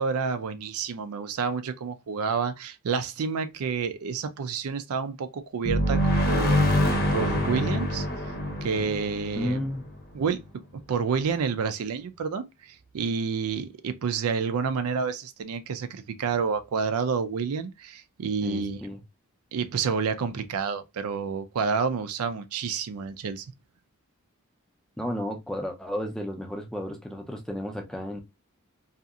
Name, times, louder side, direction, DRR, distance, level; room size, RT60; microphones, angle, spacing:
voice 1, 0.0-6.0 6.3-6.7 7.1-8.1 8.6-9.6 10.1-10.4 10.9-18.8 19.5-23.5, right 5 dB, 75° right, 0.4 m, -29 dB
sound 1, 5.6-10.2, equal, 45° left, 0.7 m, -25 dB
voice 2, 9.4-9.8 18.4-19.0 25.0-28.2, equal, 5° left, 0.5 m, -32 dB
2.7 x 2.4 x 2.3 m
head